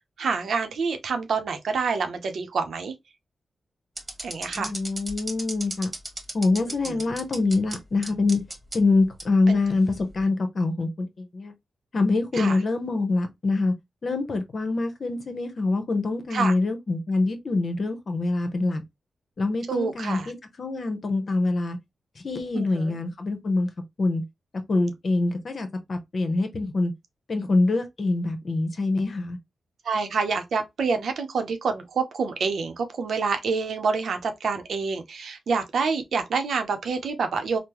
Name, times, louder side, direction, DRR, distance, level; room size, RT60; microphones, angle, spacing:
voice 1, 0.2-2.9 4.2-4.7 6.5-7.0 9.5-9.6 12.3-12.6 16.3-16.5 19.7-20.3 22.5-23.0 29.8-37.6, right 5 dB, 75° right, 0.6 m, -27 dB
sound 1, 4.0-7.8 8.0-8.8 9.2-9.3 10.0-10.2, right 2 dB, 30° right, 1.2 m, -34 dB
voice 2, 4.5-5.9 6.3-8.4 8.7-11.5 11.9-13.7 14.0-18.8 19.4-21.8 22.2-23.7 24.0-24.2 24.7-26.9 27.3-29.4, left 3 dB, 55° left, 0.9 m, -25 dB
3.6 x 2.1 x 2.9 m
cardioid pair, 60°, 0 cm